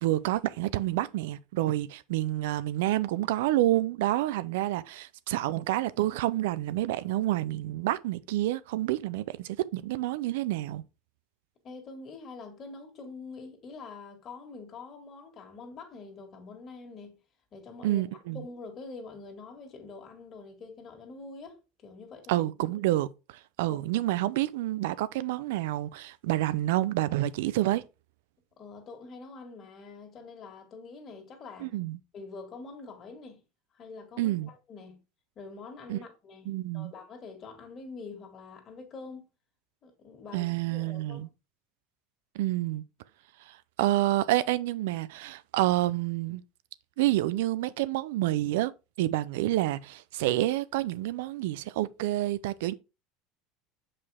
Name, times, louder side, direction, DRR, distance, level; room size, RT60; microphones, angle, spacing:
voice 1, 0.0-10.8 17.8-18.4 22.3-27.8 31.6-32.0 34.2-34.5 35.9-36.0 36.5-36.9 40.3-41.3 42.3-42.8 43.5-46.4 47.0-48.7 49.0-52.7, right 15 dB, 80° right, 0.5 m, -28 dB
voice 2, 11.6-17.2 17.5-22.3 23.7-23.8 28.6-31.8 32.1-33.4 33.7-35.0 35.4-39.3 39.8-41.2, left 4 dB, 40° left, 2.2 m, -45 dB
6.4 x 5.1 x 3.6 m
supercardioid pair, 105°, 0 cm